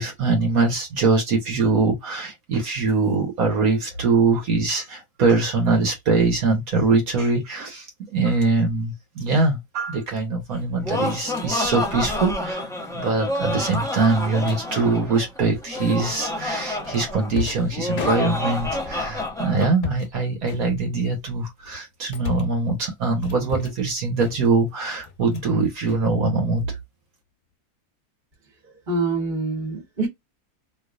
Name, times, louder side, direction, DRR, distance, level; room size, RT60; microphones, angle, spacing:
voice 1, 0.0-12.6 12.9-26.7, right 3 dB, 65° right, 1.5 m, -22 dB
sound 1, 8.3-8.6 10.1-10.3 11.1-11.5 11.9-12.1 12.4-12.6 12.9-13.0 13.7-14.6 15.7-16.2 16.8-18.7 19.5-20.1 20.4-21.2 21.7-22.6 23.2-23.9 24.2-24.7 25.0-25.5 25.8-26.7, left 7 dB, 75° left, 1.4 m, -36 dB
Laughter, 10.5-19.7, left 2 dB, 5° left, 0.7 m, -28 dB
voice 2, 28.9-30.1, right 3 dB, 30° right, 1.4 m, -25 dB
3.3 x 3.1 x 2.4 m
omnidirectional pair, 1.6 m